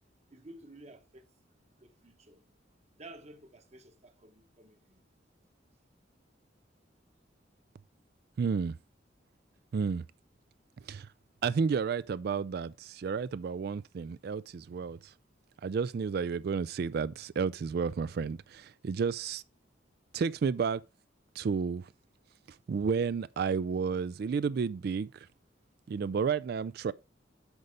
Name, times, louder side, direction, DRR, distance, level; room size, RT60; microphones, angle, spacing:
voice 1, 0.3-1.3 1.8-2.4 3.0-5.0, right 2 dB, 35° right, 1.0 m, -52 dB
voice 2, 8.4-8.8 9.7-10.0 10.9-11.1 11.4-15.1 15.6-19.4 20.1-20.8 21.4-21.9 22.7-25.3 25.9-26.9, right 5 dB, 55° right, 0.3 m, -31 dB
8.1 x 5.4 x 4.8 m
head